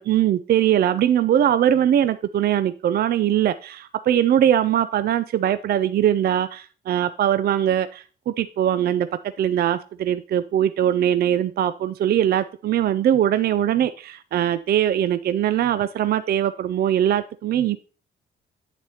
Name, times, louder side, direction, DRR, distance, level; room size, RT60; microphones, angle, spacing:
voice 1, 0.0-9.1 9.4-17.8, right 10 dB, 50° right, 0.4 m, -21 dB
8.2 x 8.0 x 2.8 m
cardioid pair, 90°, 20 cm